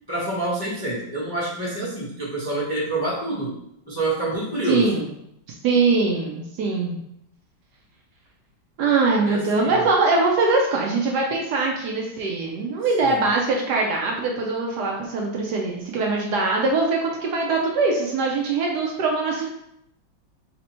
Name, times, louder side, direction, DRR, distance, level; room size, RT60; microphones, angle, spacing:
voice 1, 0.1-3.6 3.9-4.9 9.3-9.8 13.1-13.3, right 1 dB, 30° left, -7 dB, 0.4 m, -27 dB
voice 2, 4.7-5.1 5.6-7.0 8.8-19.5, right 3 dB, 70° right, 0 dB, 1.1 m, -22 dB
3.4 x 2.8 x 4.2 m, 0.79 s
omnidirectional pair, 2.1 m